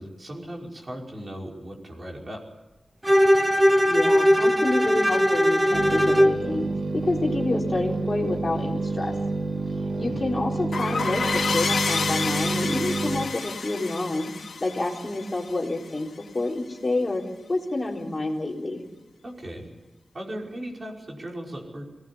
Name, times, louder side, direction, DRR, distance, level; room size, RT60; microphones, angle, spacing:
voice 1, 0.0-2.4 10.0-10.3 19.2-19.7 20.1-21.9, equal, 30° right, 0 dB, 5.2 m, -37 dB
Bowed string instrument, 3.0-6.4, equal, 10° right, 1.1 m, -19 dB
voice 2, 3.9-6.7 6.9-9.1 10.0-14.3 14.6-17.2 17.5-18.8, left 2 dB, 25° left, -1 dB, 3.9 m, -28 dB
sound 1, 5.7-13.3, right 3 dB, 55° right, 1.9 m, -29 dB
sound 2, 10.7-16.0, left 4 dB, 85° left, 2.1 m, -29 dB
22.5 x 18.5 x 8.7 m, 1.1 s
wide cardioid pair, 165°, 0 cm